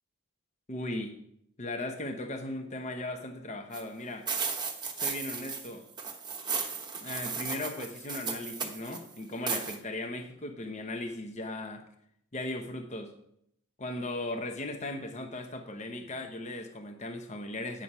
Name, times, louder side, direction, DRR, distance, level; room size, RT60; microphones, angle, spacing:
voice 1, 0.7-1.1 1.6-4.3 5.0-5.8 7.0-11.8 12.3-13.1 13.8-17.8, left 2 dB, 30° left, 5 dB, 0.8 m, -37 dB
sound 1, 3.7-3.8 4.3-5.7 6.0-9.0 9.5-9.8, right 5 dB, 20° right, 0.9 m, -35 dB
8.8 x 6.4 x 5.5 m, 0.73 s
head